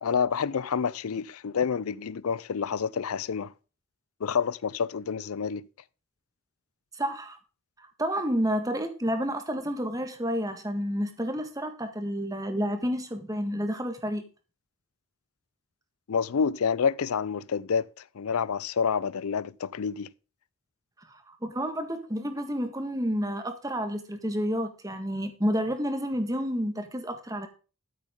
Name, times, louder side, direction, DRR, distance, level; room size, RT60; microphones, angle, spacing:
voice 1, 0.0-3.5 4.2-5.7 16.1-20.1, left 6 dB, 85° left, 0.5 m, -28 dB
voice 2, 6.9-7.4 7.8-14.2 21.1-27.5, equal, 15° right, 1.6 m, -30 dB
13.5 x 8.0 x 3.7 m
head